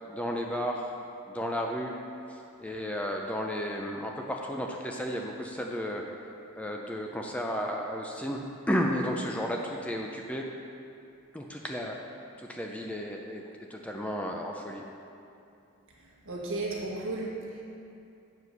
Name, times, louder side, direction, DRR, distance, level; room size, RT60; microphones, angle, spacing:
voice 1, 0.1-0.9 1.2-2.0 2.3-6.1 6.6-10.5 11.3-12.0 12.4-13.4 13.7-14.8, equal, 5° left, 0 dB, 0.4 m, -33 dB
voice 2, 16.2-17.6, right 2 dB, 60° right, -4 dB, 1.6 m, -34 dB
7.7 x 4.8 x 6.6 m, 2.6 s
head